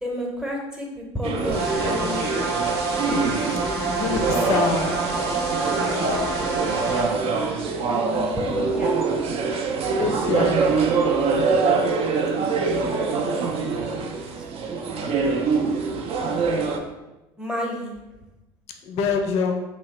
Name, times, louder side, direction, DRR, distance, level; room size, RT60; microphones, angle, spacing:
voice 1, 0.0-2.4 7.9-8.9 12.7-13.5 14.1-14.8 17.4-17.9, equal, 5° right, -1 dB, 0.8 m, -32 dB
sound 1, 1.2-16.8, right 4 dB, 45° right, 0.4 m, -24 dB
sound 2, 1.5-7.0, right 3 dB, 80° right, 1.1 m, -27 dB
voice 2, 3.8-5.1 10.0-10.5 18.8-19.6, left 5 dB, 50° left, 4 dB, 0.4 m, -25 dB
2.7 x 2.1 x 3.1 m, 1.0 s
hypercardioid pair, 70°, 14 cm